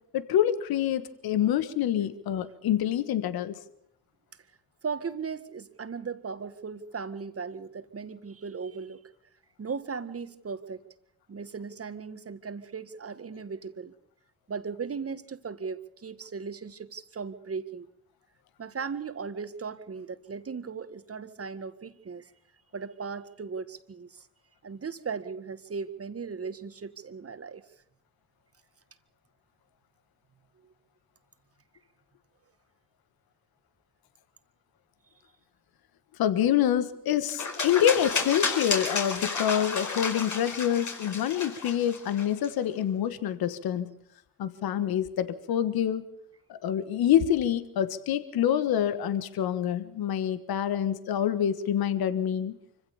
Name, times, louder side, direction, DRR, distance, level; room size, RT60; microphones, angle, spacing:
voice 1, 0.1-3.6 36.2-43.9 44.4-46.0 46.5-52.6, left 10 dB, 75° left, 13 dB, 1.4 m, -26 dB
voice 2, 4.8-9.0 9.6-10.8 11.3-13.9 14.5-17.9 18.6-22.3 22.7-24.3 24.6-27.6, right 5 dB, 40° right, 11 dB, 1.8 m, -37 dB
sound 1, 37.3-42.5, left 4 dB, 50° left, 5.0 m, -32 dB
25.0 x 16.0 x 7.0 m, 0.76 s
supercardioid pair, 60°, 37 cm